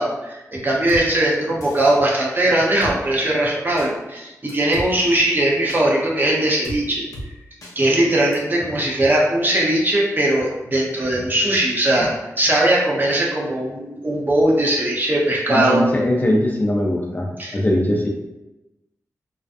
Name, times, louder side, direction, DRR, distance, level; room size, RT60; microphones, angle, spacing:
voice 1, 0.0-7.0 7.8-12.1 12.4-15.9 17.4-17.6, right 1 dB, 30° right, -3 dB, 0.7 m, -19 dB
Drum kit, 0.9-1.0 1.6-2.0 2.8-3.0 3.8-3.9 4.5-4.9 5.7-5.8 6.6-6.8 7.1-7.3 7.6-7.7 8.3-8.4, equal, 70° left, 0.6 m, -33 dB
voice 2, 15.5-17.3 17.5-18.1, left 1 dB, 30° left, -1 dB, 0.4 m, -20 dB
2.4 x 2.2 x 2.5 m, 0.99 s
cardioid pair, 60°, 6 cm